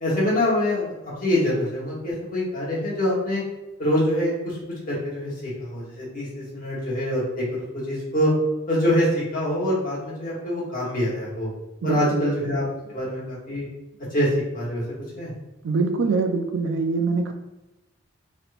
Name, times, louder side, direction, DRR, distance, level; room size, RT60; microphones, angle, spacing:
voice 1, 0.0-3.4 3.8-4.6 4.9-8.3 8.7-11.5 11.8-12.6 12.9-13.7 14.1-14.3 14.5-14.8 15.2-15.3, left 1 dB, 45° left, -7 dB, 1.3 m, -25 dB
voice 2, 11.8-12.3 15.6-17.3, right 4 dB, 75° right, 6 dB, 0.4 m, -24 dB
3.3 x 2.9 x 2.5 m, 0.99 s
head